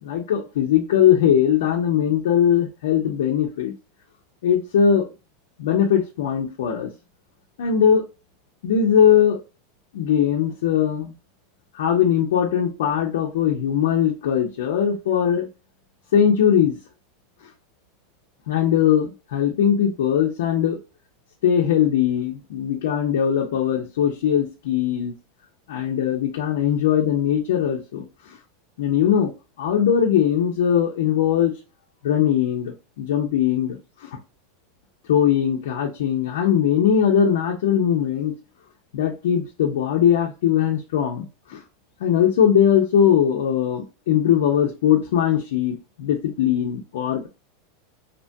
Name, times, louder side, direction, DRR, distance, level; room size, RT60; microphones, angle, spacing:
voice 1, 0.0-3.7 4.4-5.1 5.6-6.9 7.6-8.0 8.6-9.4 9.9-11.1 11.7-15.5 16.1-16.8 18.5-20.8 21.4-25.1 25.7-28.0 28.8-29.3 29.6-31.5 32.0-33.8 35.1-38.3 38.9-41.6 42.0-47.3, left 9 dB, 80° left, -1 dB, 0.7 m, -20 dB
2.9 x 2.2 x 2.6 m, 0.29 s
supercardioid pair, 140°, 0 cm